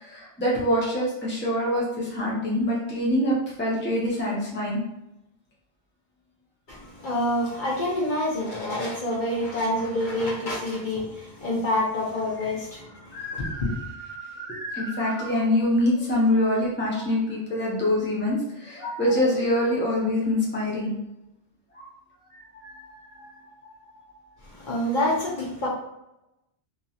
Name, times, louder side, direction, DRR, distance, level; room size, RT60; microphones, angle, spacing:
voice 1, 0.0-4.8 12.4-12.6 13.1-20.9 21.7-21.8 22.4-23.8, left 1 dB, 10° left, -5 dB, 0.7 m, -25 dB
voice 2, 6.7-13.8 24.4-25.7, left 1 dB, 50° left, -5 dB, 0.9 m, -27 dB
2.8 x 2.7 x 2.4 m, 0.87 s
omnidirectional pair, 1.1 m